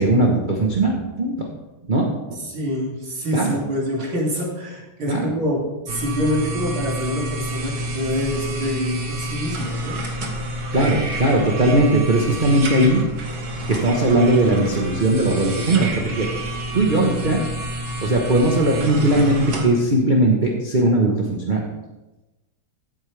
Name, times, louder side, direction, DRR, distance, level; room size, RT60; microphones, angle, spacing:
voice 1, 0.0-1.5 1.8-2.4 3.3-3.6 5.1-5.2 10.7-13.0 13.7-16.3 16.7-17.5 18.0-21.7, right 1 dB, 30° right, 0 dB, 1.1 m, -19 dB
voice 2, 2.3-10.0, equal, 85° right, -4 dB, 3.6 m, -26 dB
sound 1, 5.9-19.7, right 1 dB, 50° right, 2.0 m, -29 dB
15.0 x 8.8 x 3.4 m, 1.0 s
omnidirectional pair, 2.1 m